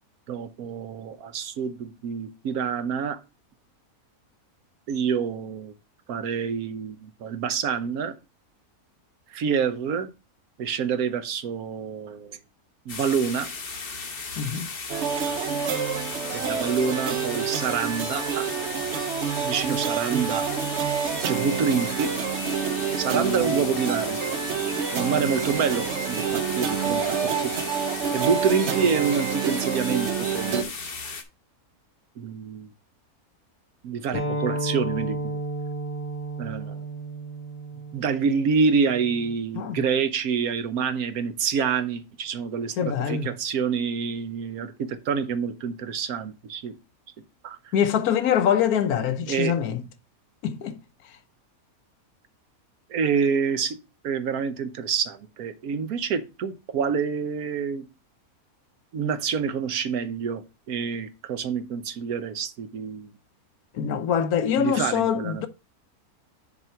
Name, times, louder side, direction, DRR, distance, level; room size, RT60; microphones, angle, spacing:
voice 1, 0.3-3.2 4.9-5.7 6.1-8.1 9.3-10.1 10.6-12.4 12.9-13.5 15.3-15.4 16.3-18.5 19.4-20.5 21.2-22.1 23.0-24.2 24.9-27.5 28.1-30.7 32.2-32.7 33.8-35.4 36.4-36.8 37.9-46.7 47.4-47.6 49.3-49.5 52.9-53.8 54.0-57.8 58.9-63.1 64.6-65.5, right 6 dB, 75° right, 1.3 m, -27 dB
sound 1, 12.9-31.2, left 4 dB, 40° left, 1.2 m, -36 dB
voice 2, 14.4-14.7 39.5-39.8 42.8-43.3 47.7-49.8 50.4-50.8 63.7-65.5, left 8 dB, 75° left, 1.3 m, -24 dB
sound 2, 14.9-30.6, right 7 dB, 55° right, 0.9 m, -28 dB
sound 3, 34.1-39.3, right 2 dB, 10° left, 2.6 m, -32 dB
6.7 x 4.1 x 5.7 m
omnidirectional pair, 1.6 m